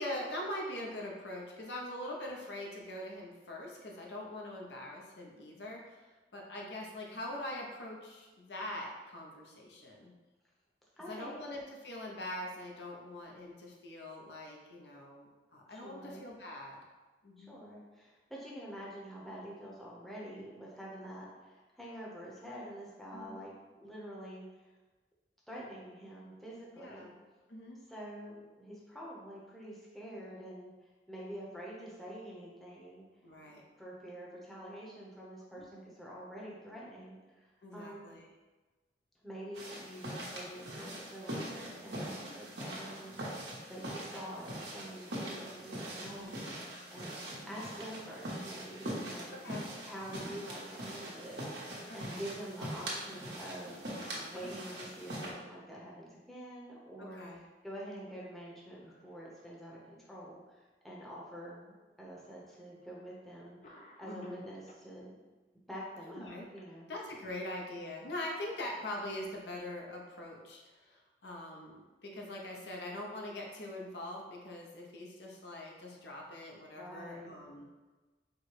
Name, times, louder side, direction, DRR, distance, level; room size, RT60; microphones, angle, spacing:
voice 1, 0.0-6.1 6.3-10.1 11.1-16.8 17.2-17.6 23.1-23.4 26.8-27.2 27.5-27.8 33.2-33.6 35.6-35.7 37.6-38.3 42.2-42.3 46.0-46.3 49.3-49.7 51.9-52.3 57.0-57.4 64.1-64.4 66.1-66.5 66.9-77.7, left 1 dB, 75° left, -1 dB, 0.7 m, -43 dB
voice 2, 11.0-11.5 15.7-16.2 17.4-23.5 23.8-24.7 25.5-27.1 27.9-33.0 33.8-38.1 39.2-43.4 43.7-49.4 49.8-60.4 60.8-63.6 64.0-65.1 65.7-66.9 76.8-77.3, equal, ahead, -6 dB, 0.8 m, -47 dB
sound 1, 39.5-55.3, right 1 dB, 80° right, 1.1 m, -42 dB
Cough, 53.9-55.4 57.3-57.7 58.0-58.1 59.0-59.7 60.4-60.5 61.6-61.7 62.8-63.0 63.6-64.9 65.8-67.3, left 1 dB, 40° left, 0.5 m, -58 dB
4.4 x 2.2 x 4.7 m, 1.2 s
head